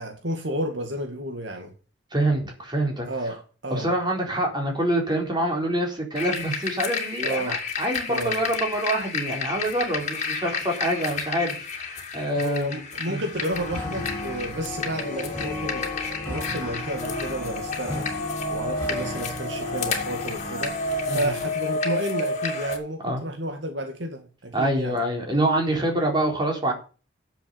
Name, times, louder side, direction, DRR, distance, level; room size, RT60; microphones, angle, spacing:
voice 1, 0.0-1.7 3.1-3.4 3.6-3.9 7.2-7.6 8.1-8.4 12.3-15.9 16.3-18.1 18.5-20.8 21.1-25.0, right 1 dB, 70° right, 5 dB, 2.1 m, -31 dB
voice 2, 2.1-3.1 3.7-12.8 13.1-13.2 21.1-21.3 23.0-23.2 24.5-26.7, right 1 dB, 25° right, 1 dB, 4.0 m, -26 dB
sound 1, 6.2-22.8, left 3 dB, 40° left, 2.4 m, -31 dB
sound 2, 13.5-21.5, left 2 dB, 10° left, 5.6 m, -34 dB
10.0 x 7.2 x 7.0 m, 0.35 s
head